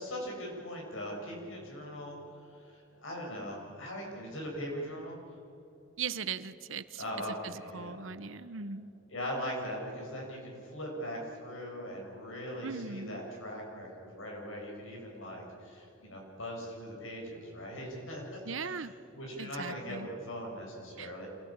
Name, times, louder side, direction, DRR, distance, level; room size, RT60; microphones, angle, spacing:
voice 1, 0.0-2.2 2.5-5.2 7.0-8.3 9.1-21.3, equal, 75° left, -1 dB, 7.3 m, -40 dB
voice 2, 6.0-7.0 7.4-8.9 12.6-13.2 18.5-18.9 19.4-20.1 21.0-21.1, right 5 dB, 70° right, 14 dB, 0.9 m, -39 dB
26.0 x 18.0 x 8.9 m, 2.9 s
head